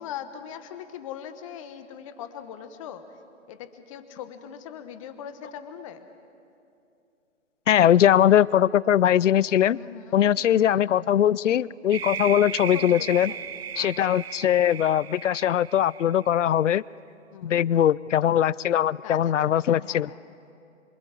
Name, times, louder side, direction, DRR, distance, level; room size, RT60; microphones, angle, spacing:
voice 1, 0.0-3.2 3.5-6.1 9.7-10.3 12.7-13.5 13.7-14.5 17.3-17.7 19.0-20.3, left 9 dB, 25° left, 10 dB, 1.2 m, -41 dB
voice 2, 7.7-9.8 10.1-13.3 13.8-16.8 17.4-20.1, left 10 dB, 70° left, 23 dB, 0.5 m, -21 dB
sound 1, 11.9-16.5, right 8 dB, 55° right, 0.8 m, -36 dB
27.0 x 24.0 x 7.3 m, 2.6 s
figure-of-eight pair, 140°, 38 cm